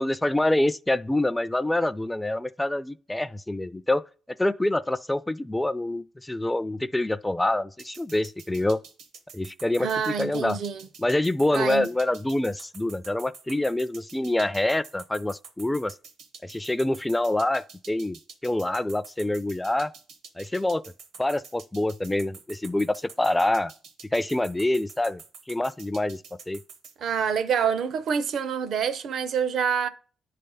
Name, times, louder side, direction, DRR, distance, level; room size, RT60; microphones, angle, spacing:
voice 1, 0.0-4.0 4.4-8.8 9.3-9.9 10.2-10.6 11.0-15.9 16.4-19.9 20.4-20.8 21.2-23.7 24.1-25.2 25.5-26.2 26.5-26.6, left 1 dB, 10° left, 0.3 m, -26 dB
sound 1, 7.8-26.9, right 6 dB, 80° right, 1.1 m, -47 dB
voice 2, 9.8-10.8 11.5-11.9 27.0-29.9, right 7 dB, 65° right, 0.6 m, -26 dB
10.0 x 3.4 x 5.4 m
cardioid pair, 90°, 0 cm